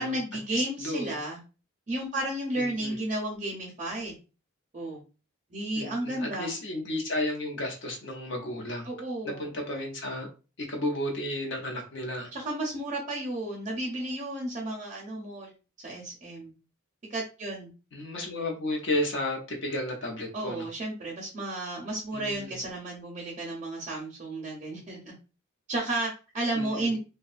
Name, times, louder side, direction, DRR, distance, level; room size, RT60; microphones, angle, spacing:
voice 1, 0.0-1.4 1.9-4.2 4.7-5.0 5.5-6.6 8.9-9.5 12.3-15.5 15.8-16.5 17.1-17.7 20.3-25.1 25.7-27.0, right 1 dB, 35° right, -3 dB, 0.5 m, -33 dB
voice 2, 0.5-1.2 2.6-3.0 5.7-8.9 9.2-10.3 10.6-12.3 17.9-20.7 22.1-22.6 26.5-27.0, left 1 dB, 55° left, 1 dB, 0.7 m, -33 dB
2.6 x 2.2 x 2.4 m, 0.33 s
head